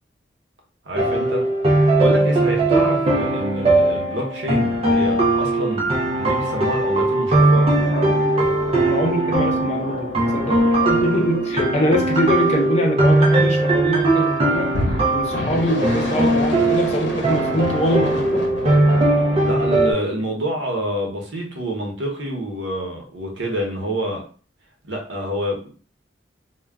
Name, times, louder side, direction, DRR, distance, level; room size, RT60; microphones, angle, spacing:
voice 1, 0.9-1.4 2.0-5.9 6.1-7.7 19.4-24.2 24.8-25.7, equal, 90° right, 0 dB, 0.8 m, -27 dB
sound 1, 1.0-19.9, right 2 dB, 30° right, 0.4 m, -19 dB
sound 2, 7.3-13.7 14.7-19.6, left 1 dB, 75° left, 0.7 m, -31 dB
voice 2, 8.8-10.6 10.9-14.7 15.1-18.5, left 1 dB, 35° left, 1 dB, 0.5 m, -23 dB
2.2 x 2.1 x 3.4 m, 0.39 s
head